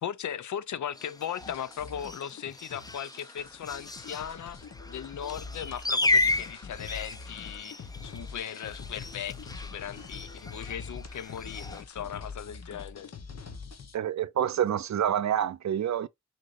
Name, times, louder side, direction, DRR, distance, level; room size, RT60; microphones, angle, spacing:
voice 1, 0.0-4.6 4.9-13.1, left 9 dB, 85° left, 0.5 m, -38 dB
sound 1, 0.9-11.8, left 2 dB, 15° left, 0.5 m, -34 dB
sound 2, 1.4-14.0, left 4 dB, 60° left, 0.9 m, -44 dB
voice 2, 13.9-16.1, right 10 dB, 70° right, 0.4 m, -27 dB
6.2 x 2.8 x 2.4 m
wide cardioid pair, 115°, 29 cm